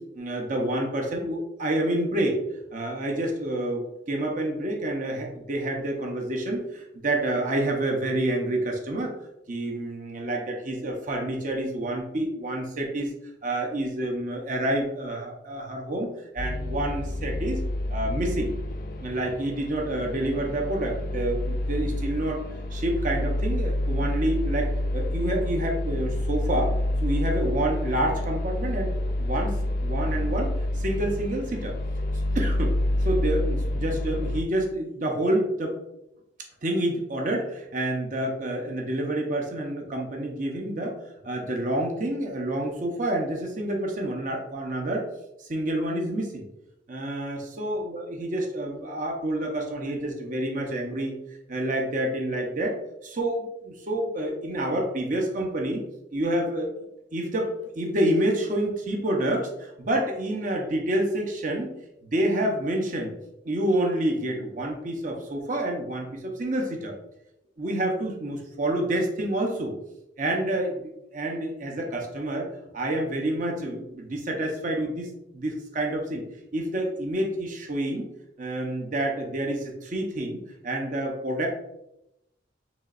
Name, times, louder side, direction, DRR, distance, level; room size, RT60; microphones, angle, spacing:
voice 1, 0.1-2.4 2.7-9.1 9.5-13.1 13.4-16.1 16.3-17.6 17.9-18.5 19.0-22.4 22.7-26.7 27.0-28.9 29.2-29.6 29.8-31.7 32.3-32.7 33.0-35.8 36.6-40.9 41.2-45.0 45.4-46.4 46.9-51.2 51.5-55.8 56.1-56.7 57.1-57.5 57.8-61.7 62.1-63.1 63.4-66.9 67.6-69.7 70.2-72.5 72.7-76.2 76.5-78.1 78.4-81.5, right 1 dB, 45° right, 1 dB, 0.8 m, -28 dB
sound 1, 16.4-34.4, left 1 dB, 50° left, 0.5 m, -28 dB
7.0 x 3.0 x 2.5 m, 0.85 s
head